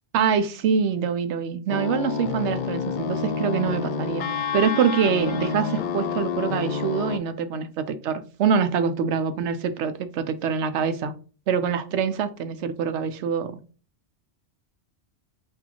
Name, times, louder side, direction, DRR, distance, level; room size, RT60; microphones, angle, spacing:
voice 1, 0.1-4.3 4.5-11.1 11.5-13.5, right 6 dB, 85° right, 10 dB, 0.9 m, -25 dB
sound 1, 1.7-7.2, left 6 dB, 60° left, 0.5 m, -28 dB
6.2 x 2.7 x 2.9 m, 0.37 s
omnidirectional pair, 1.1 m